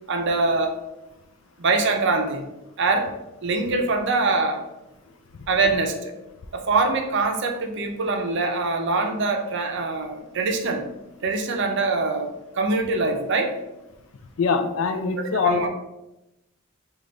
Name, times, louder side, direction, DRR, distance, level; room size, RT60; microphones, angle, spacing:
voice 1, 0.1-0.8 1.6-2.4 2.8-3.1 3.4-4.6 5.5-6.1 6.5-10.8 11.2-13.5 15.4-15.7, right 3 dB, 55° right, 4 dB, 0.5 m, -23 dB
voice 2, 14.4-15.7, left 5 dB, 70° left, 7 dB, 0.4 m, -23 dB
3.3 x 2.4 x 3.8 m, 0.94 s
head